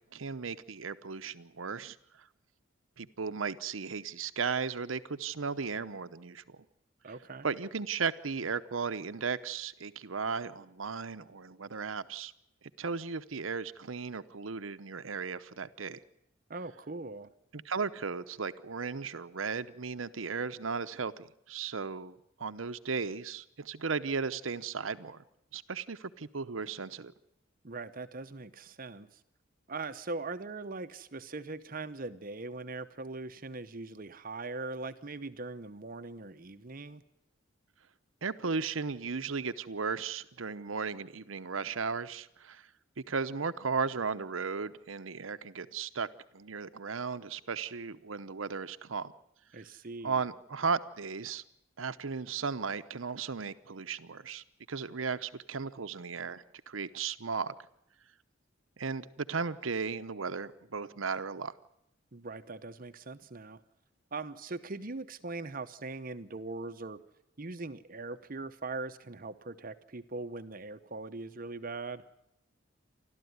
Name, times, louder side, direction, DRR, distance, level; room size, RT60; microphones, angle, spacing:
voice 1, 0.1-2.0 3.0-6.6 7.4-12.3 12.8-16.0 17.5-25.2 25.5-27.1 38.2-42.7 43.1-46.1 46.3-49.1 50.0-51.4 51.8-57.5 58.8-61.5, right 5 dB, 85° right, 11 dB, 0.9 m, -35 dB
voice 2, 7.0-7.5 16.5-17.3 27.6-29.2 29.7-37.0 49.5-50.2 62.1-63.6 64.1-67.0 67.4-72.0, right 3 dB, 45° right, 10 dB, 0.9 m, -41 dB
29.5 x 13.0 x 9.5 m, 0.80 s
head